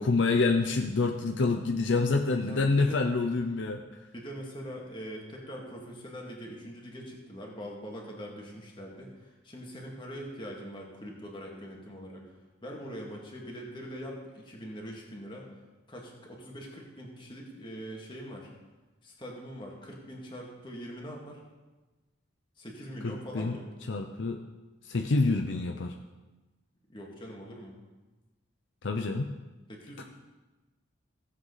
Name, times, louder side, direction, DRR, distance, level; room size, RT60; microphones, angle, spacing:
voice 1, 0.0-3.8 23.0-23.6 23.9-24.4 24.8-25.9 28.8-29.3 30.0-30.1, left 3 dB, 60° left, 4 dB, 0.6 m, -27 dB
voice 2, 2.4-3.1 4.1-12.2 12.6-15.5 15.9-18.5 19.0-21.4 22.6-23.7 26.9-27.7 29.7-30.0, equal, 25° left, -1 dB, 2.0 m, -42 dB
16.5 x 7.8 x 4.0 m, 1.2 s
head